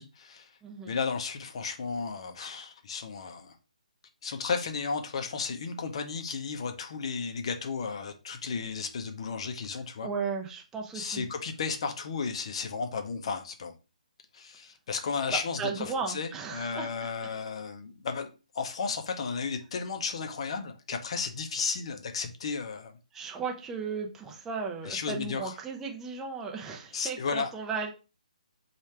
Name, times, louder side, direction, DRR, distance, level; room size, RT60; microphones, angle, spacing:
voice 1, 0.0-0.5 0.9-3.6 4.2-10.1 10.9-13.7 14.3-22.9 24.8-25.5 26.9-27.5, left 5 dB, 45° left, 0.6 m, -34 dB
voice 2, 0.6-0.9 10.0-11.2 15.3-17.1 23.1-27.9, right 5 dB, 10° right, 0.6 m, -35 dB
3.2 x 2.4 x 4.2 m
figure-of-eight pair, 145°, 4 cm